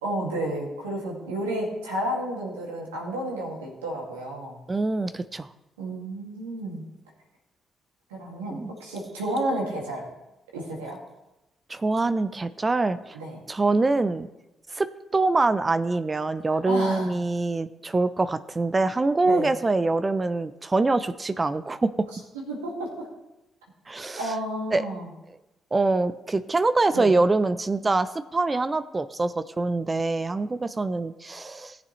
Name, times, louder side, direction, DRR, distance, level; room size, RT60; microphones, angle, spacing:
voice 1, 0.0-4.6 5.8-6.8 8.1-10.1 10.5-11.0 13.1-13.4 16.7-17.1 19.3-19.5 22.3-23.1 24.2-25.1 26.9-27.1, right 1 dB, 90° right, -2 dB, 2.2 m, -31 dB
voice 2, 4.7-5.5 8.5-8.7 11.7-13.2 13.5-14.3 14.7-14.9 15.1-21.9 23.9-24.2 24.7-24.9 25.7-31.8, right 3 dB, 30° right, 13 dB, 0.6 m, -24 dB
17.5 x 7.0 x 3.2 m, 0.97 s
hypercardioid pair, 45°, 0 cm